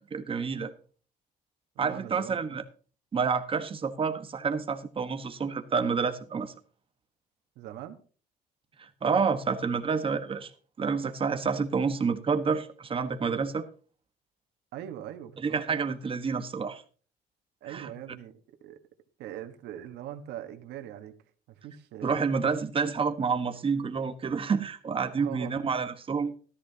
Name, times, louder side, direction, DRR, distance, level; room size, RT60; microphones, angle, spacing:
voice 1, 0.1-0.7 1.8-2.6 3.1-6.5 8.8-10.5 10.8-13.6 15.4-16.8 17.7-17.9 22.0-26.3, right 5 dB, 30° right, 1.3 m, -29 dB
voice 2, 1.7-2.6 7.5-8.0 14.7-15.9 17.6-18.8 19.2-21.2 21.5-22.3 23.5-23.9 25.2-25.7, right 11 dB, 85° right, 1.4 m, -42 dB
13.5 x 13.0 x 2.9 m
cardioid pair, 110°, 17 cm